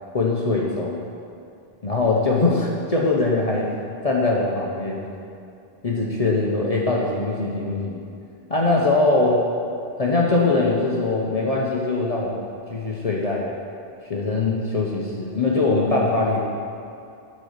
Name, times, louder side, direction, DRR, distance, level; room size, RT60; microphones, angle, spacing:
voice 1, 0.1-1.0 1.8-3.7 4.0-5.1 5.8-8.0 8.5-9.4 10.0-12.4 12.7-13.5 14.1-16.4, left 3 dB, 40° left, -3 dB, 0.9 m, -22 dB
9.6 x 4.2 x 6.5 m, 2.5 s
omnidirectional pair, 1.0 m